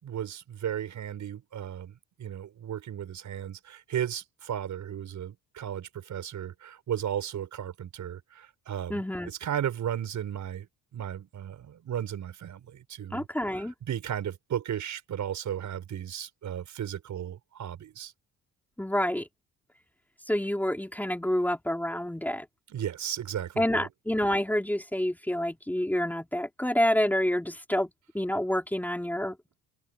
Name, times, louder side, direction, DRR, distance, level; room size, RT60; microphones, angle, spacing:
voice 1, 0.0-1.9 2.2-10.7 10.9-13.3 13.5-18.1 22.7-23.9, right 10 dB, 55° right, 6.6 m, -35 dB
voice 2, 8.9-9.3 13.1-13.7 18.8-19.3 20.3-22.5 23.6-29.4, left 1 dB, 5° left, 3.9 m, -28 dB
open air
cardioid pair, 105°, 34 cm